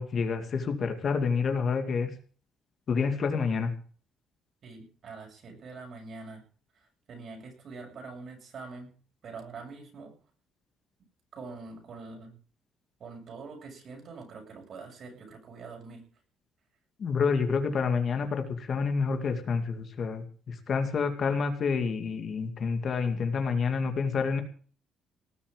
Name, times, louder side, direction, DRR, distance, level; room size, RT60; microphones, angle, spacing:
voice 1, 0.0-2.1 2.9-3.7 17.0-24.4, left 5 dB, 40° left, 6 dB, 2.3 m, -28 dB
voice 2, 4.6-6.4 7.1-8.9 9.2-10.1 11.3-12.4 13.0-16.0, right 4 dB, 45° right, 2 dB, 7.4 m, -44 dB
19.0 x 7.3 x 8.9 m, 0.43 s
cardioid pair, 155°, 0 cm